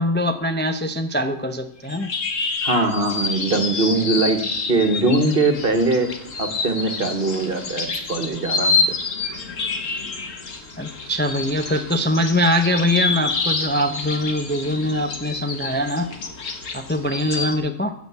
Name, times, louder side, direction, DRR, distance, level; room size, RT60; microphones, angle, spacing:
voice 1, 0.0-2.1 10.8-16.1 16.7-17.9, left 1 dB, 10° left, 6 dB, 0.7 m, -22 dB
sound 1, 1.8-17.5, left 4 dB, 80° left, 1.9 m, -28 dB
voice 2, 2.6-4.4 4.7-6.1 6.4-8.8, right 2 dB, 45° right, 8 dB, 1.7 m, -21 dB
15.5 x 7.1 x 8.2 m, 0.71 s
omnidirectional pair, 1.3 m